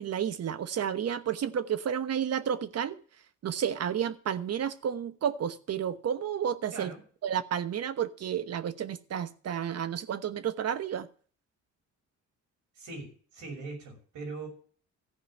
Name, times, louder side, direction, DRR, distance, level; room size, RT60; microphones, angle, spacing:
voice 1, 0.0-3.0 3.4-6.9 7.2-11.1, right 8 dB, 55° right, 1.1 m, -31 dB
voice 2, 12.8-14.5, right 3 dB, 75° right, 6.3 m, -41 dB
14.5 x 5.0 x 8.8 m
cardioid pair, 90°, 30 cm